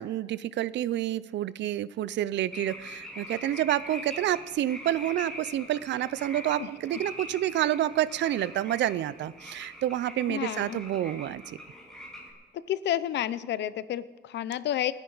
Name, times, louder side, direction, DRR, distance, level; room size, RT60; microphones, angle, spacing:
voice 1, 0.0-11.6, right 12 dB, 80° right, 18 dB, 0.5 m, -29 dB
sound 1, 2.5-12.3, equal, 5° left, 5.0 m, -43 dB
voice 2, 10.3-10.8 12.7-14.9, left 11 dB, 75° left, 16 dB, 0.7 m, -30 dB
29.5 x 9.9 x 4.0 m, 1.4 s
cardioid pair, 140°, 18 cm